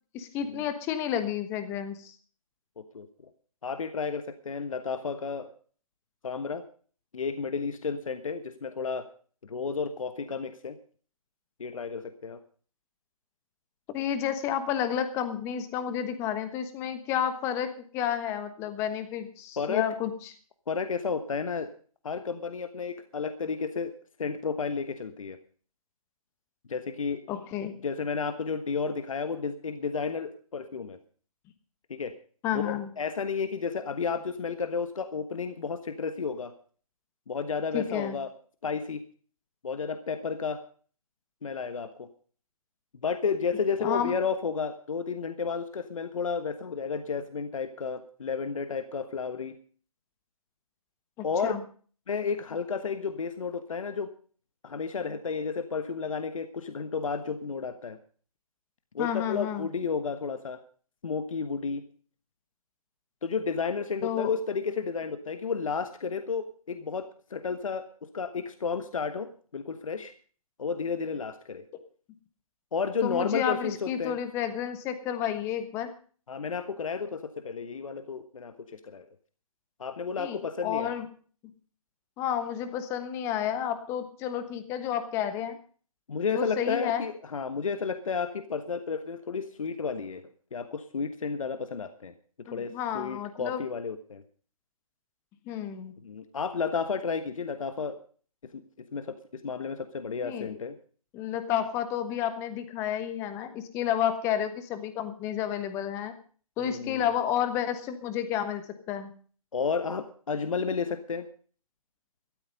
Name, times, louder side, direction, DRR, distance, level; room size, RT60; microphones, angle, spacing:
voice 1, 0.1-2.1 13.9-20.3 27.3-27.7 32.4-32.9 37.7-38.2 43.8-44.1 51.2-51.6 59.0-59.7 64.0-64.3 73.0-75.9 80.2-81.1 82.2-85.6 86.3-87.0 92.5-93.6 95.5-95.9 100.2-100.6 101.1-106.1 106.6-109.1, left 9 dB, 15° left, 10 dB, 1.2 m, -31 dB
voice 2, 3.6-5.5 6.2-6.6 7.1-9.1 9.4-10.8 11.6-12.4 19.6-19.9 20.7-21.7 22.0-23.9 24.2-25.4 26.7-27.2 27.8-31.0 31.9-32.1 32.5-36.5 37.3-38.3 38.6-39.0 39.6-40.6 41.4-42.1 43.0-49.6 51.2-51.6 52.1-54.1 54.6-58.0 58.9-60.6 61.0-61.8 63.2-67.9 68.1-70.1 70.6-71.6 72.7-74.2 76.3-79.0 79.8-80.9 86.1-90.2 90.5-92.1 92.5-94.2 96.0-98.0 98.5-98.6 98.9-100.8 106.6-107.1 109.5-111.3, left 5 dB, 60° left, 10 dB, 1.4 m, -32 dB
13.5 x 13.0 x 5.3 m, 0.43 s
figure-of-eight pair, 155°, 19 cm